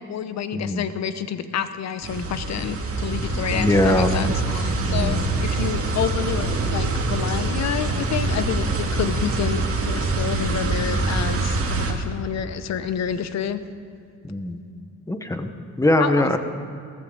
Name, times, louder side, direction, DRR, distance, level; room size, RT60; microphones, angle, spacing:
voice 1, 0.0-13.6 16.0-16.3, left 8 dB, 60° left, 12 dB, 0.9 m, -29 dB
voice 2, 0.5-0.9 3.5-4.1 4.9-5.3 14.2-14.6 15.1-15.5 15.8-16.4, left 1 dB, 10° left, 7 dB, 1.2 m, -21 dB
sound 1, 2.0-11.9, right 3 dB, 50° right, 2.1 m, -25 dB
17.0 x 14.5 x 4.0 m, 2.5 s
cardioid pair, 90°, 30 cm